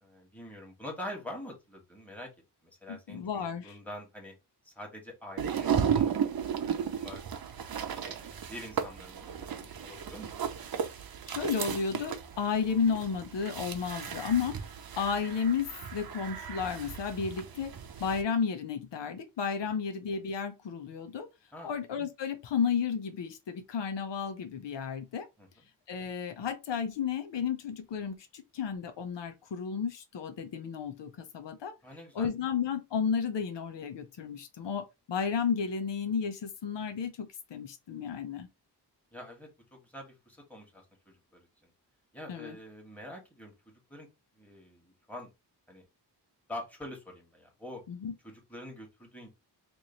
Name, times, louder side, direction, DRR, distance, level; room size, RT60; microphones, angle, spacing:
voice 1, 0.0-2.3 2.6-4.3 4.6-6.3 6.6-7.2 8.0-10.5 21.5-21.7 25.4-25.7 31.8-32.3 39.1-41.7 42.1-44.1 44.4-45.3 45.7-45.9 46.5-47.8 48.2-49.3, left 1 dB, 5° left, 1.6 m, -45 dB
voice 2, 2.9-3.8 11.3-14.6 15.0-17.7 18.0-21.3 21.6-25.3 25.9-31.7 32.1-38.5 42.3-42.6 47.9-48.1, left 6 dB, 90° left, 0.8 m, -32 dB
sound 1, 5.4-18.2, right 8 dB, 60° right, 0.7 m, -35 dB
3.1 x 2.6 x 3.9 m
wide cardioid pair, 110°, 41 cm